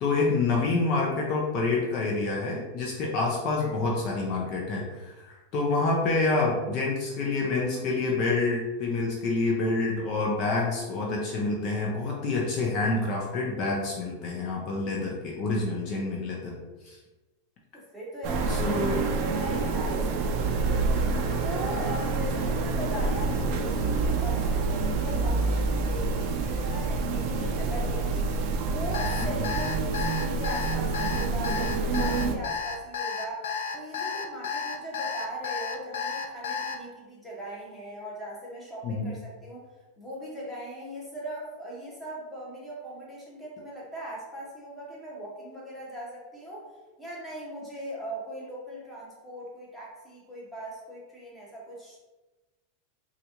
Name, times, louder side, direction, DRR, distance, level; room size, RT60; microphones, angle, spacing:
voice 1, 0.0-16.6 16.8-17.0 18.5-19.0 27.3-27.5 38.8-39.1, left 3 dB, 45° left, -2 dB, 0.6 m, -27 dB
voice 2, 17.7-28.3 28.7-39.7 40.0-46.6 47.0-52.0, right 1 dB, 5° left, -6 dB, 1.1 m, -39 dB
sound 1, 18.2-32.3, right 3 dB, 45° right, 0.4 m, -27 dB
Alarm, 28.9-36.8, left 5 dB, 85° left, 0.4 m, -32 dB
4.0 x 2.4 x 2.9 m, 1.2 s
supercardioid pair, 135°, 0 cm